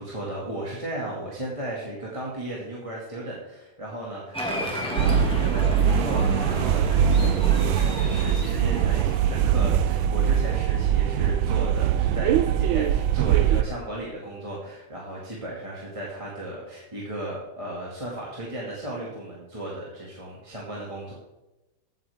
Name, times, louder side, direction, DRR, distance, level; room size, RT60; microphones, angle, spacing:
voice 1, 0.0-21.1, right 1 dB, 15° right, -5 dB, 2.3 m, -35 dB
Applause, 4.3-9.4, equal, 5° left, 2.1 m, -33 dB
sound 1, 5.0-13.6, right 9 dB, 90° right, 1.4 m, -22 dB
15.5 x 9.2 x 3.6 m, 0.98 s
omnidirectional pair, 2.1 m